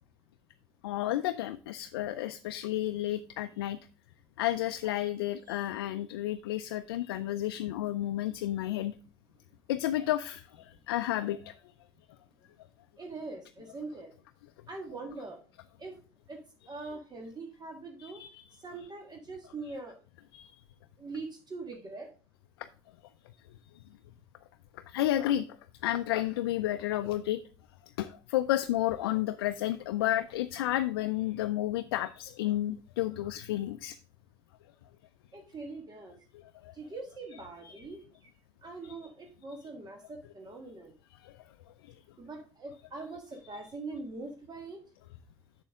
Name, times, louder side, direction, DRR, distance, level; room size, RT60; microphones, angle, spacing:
voice 1, 0.8-3.8 4.4-8.9 9.7-11.5 18.0-18.4 20.3-20.5 24.9-25.5 25.8-27.4 28.0-33.9 36.6-36.7 37.6-37.7 38.8-38.9 41.2-41.3, left 13 dB, 85° left, 10 dB, 0.4 m, -31 dB
voice 2, 13.0-14.1 14.7-15.4 15.8-16.0 16.3-16.4 16.7-18.2 18.6-20.0 21.0-22.1 35.3-36.1 36.7-38.3 38.6-40.9 42.2-44.8, right 3 dB, 35° right, 3 dB, 1.7 m, -42 dB
6.9 x 6.9 x 3.6 m, 0.36 s
hypercardioid pair, 65°, 12 cm